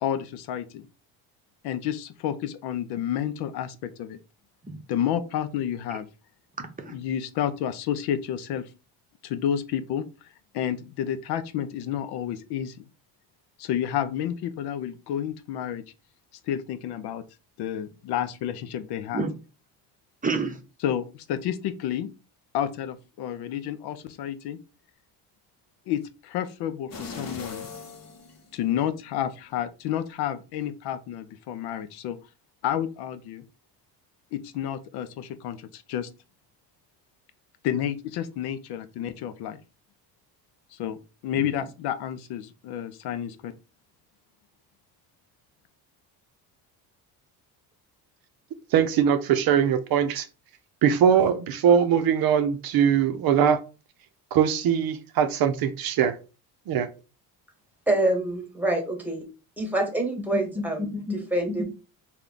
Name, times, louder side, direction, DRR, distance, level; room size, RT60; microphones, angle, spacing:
voice 1, 0.0-0.9 1.6-4.2 4.9-6.1 6.9-8.7 9.2-10.3 10.5-12.8 13.6-15.8 16.5-17.2 17.6-19.2 20.8-22.1 22.5-24.6 25.9-27.7 28.5-32.2 32.6-33.4 34.3-36.1 37.6-39.6 40.7-43.5, left 10 dB, 70° left, 0.5 m, -30 dB
voice 2, 6.6-6.9 19.1-19.3 20.2-20.6 60.3-61.2 61.5-61.6, right 1 dB, 20° right, 0.7 m, -30 dB
sound 1, 26.9-29.0 29.5-29.6, left 4 dB, 40° left, 0.9 m, -40 dB
voice 3, 48.7-50.3 50.8-53.6 54.3-56.2 56.7-56.9, right 8 dB, 60° right, 0.6 m, -21 dB
voice 4, 57.9-59.2 59.6-61.6, right 1 dB, 5° right, 1.2 m, -26 dB
3.4 x 2.2 x 3.8 m
cardioid pair, 100°, 41 cm